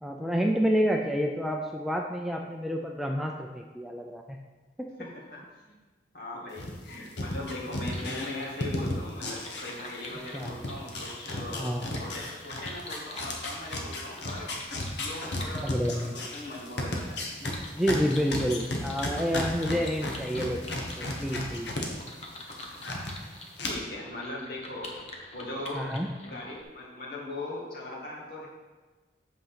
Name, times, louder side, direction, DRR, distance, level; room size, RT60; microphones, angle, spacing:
voice 1, 0.0-4.4 10.3-10.5 11.5-11.9 14.9-15.0 15.6-16.3 17.8-21.7 25.7-26.1, equal, ahead, 1 dB, 0.4 m, -29 dB
voice 2, 5.0-5.4 6.1-14.5 15.0-17.2 23.6-25.0 25.3-25.9 26.2-28.5, left 1 dB, 55° left, -4 dB, 2.2 m, -39 dB
sound 1, 6.6-10.1 10.4-21.9 22.2-23.1 23.6-23.7, left 1 dB, 75° left, 1.4 m, -34 dB
sound 2, 7.8-26.6, left 1 dB, 35° left, 1.1 m, -46 dB
8.2 x 5.1 x 5.8 m, 1.3 s
head